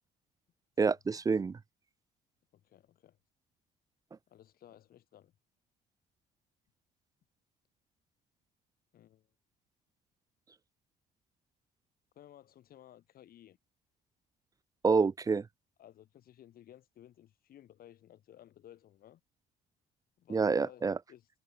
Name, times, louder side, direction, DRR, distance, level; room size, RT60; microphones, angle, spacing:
voice 1, 0.8-1.5 14.8-15.4 20.3-21.0, right 4 dB, 20° right, 0.5 m, -27 dB
voice 2, 2.5-3.2 4.3-5.3 8.9-9.3 12.1-13.6 15.8-19.2 20.2-20.8 21.1-21.3, left 11 dB, 60° left, 4.9 m, -57 dB
cardioid pair, 110°, 17 cm